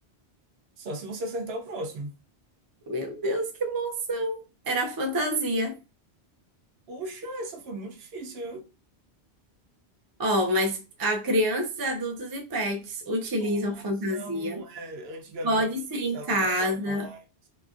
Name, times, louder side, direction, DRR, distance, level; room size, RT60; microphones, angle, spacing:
voice 1, 0.8-2.2 6.9-8.7 13.4-15.6 16.1-17.5, right 1 dB, 70° right, 0.8 m, -37 dB
voice 2, 2.9-5.7 10.2-14.6 15.4-17.1, equal, 35° right, 0.3 m, -27 dB
2.8 x 2.4 x 2.4 m
omnidirectional pair, 1.1 m